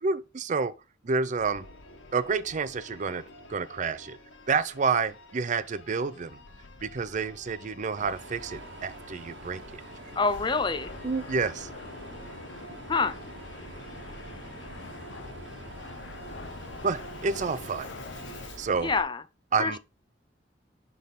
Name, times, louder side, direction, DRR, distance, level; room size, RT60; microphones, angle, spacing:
voice 1, 0.0-0.7 1.0-1.7 2.1-3.2 3.5-4.2 4.5-6.4 6.8-9.8 11.0-11.7 16.8-17.9 18.6-18.9 19.5-19.8, right 5 dB, 40° right, 0.5 m, -29 dB
Singing / Musical instrument, 1.4-18.7, left 1 dB, 90° left, 1.4 m, -49 dB
sound 1, 6.2-18.5, left 3 dB, 65° left, 0.7 m, -47 dB
Mechanisms, 8.0-19.0, right 2 dB, 70° right, 1.2 m, -45 dB
voice 2, 10.2-10.9 12.9-13.2 18.8-19.2 19.6-19.8, left 4 dB, 25° left, 0.5 m, -26 dB
10.5 x 3.6 x 4.1 m
head